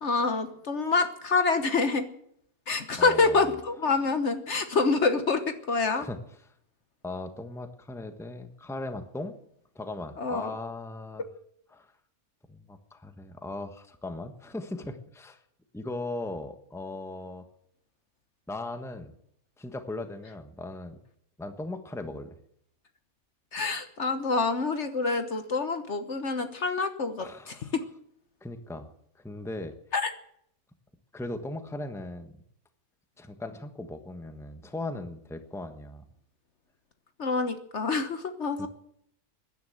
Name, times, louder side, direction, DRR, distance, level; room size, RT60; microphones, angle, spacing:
voice 1, 0.0-2.1 2.7-6.1 10.2-10.5 23.5-27.3 27.7-27.8 29.9-30.1 37.2-38.7, left 4 dB, 50° left, 9 dB, 1.4 m, -26 dB
voice 2, 3.0-3.6 5.9-6.2 7.0-9.3 9.7-11.2 11.7-11.9 12.5-15.4 15.7-17.5 18.5-19.1 19.6-21.0 21.4-22.4 27.2-27.7 28.4-28.9 29.1-29.7 31.1-32.3 33.2-36.0 38.6-38.7, left 2 dB, ahead, 7 dB, 1.2 m, -38 dB
16.5 x 10.5 x 8.0 m, 0.70 s
omnidirectional pair, 1.5 m